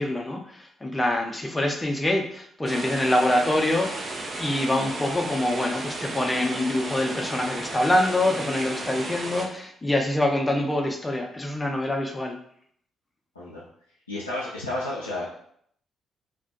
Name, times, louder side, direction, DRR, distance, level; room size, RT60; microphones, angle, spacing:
voice 1, 0.0-12.4, left 1 dB, 15° left, 2 dB, 0.5 m, -25 dB
sound 1, 2.7-9.5, right 2 dB, 40° right, 0.4 m, -34 dB
voice 2, 14.1-15.3, left 2 dB, 85° left, -7 dB, 0.3 m, -31 dB
2.4 x 2.2 x 2.5 m, 0.65 s
figure-of-eight pair, 40°, 0 cm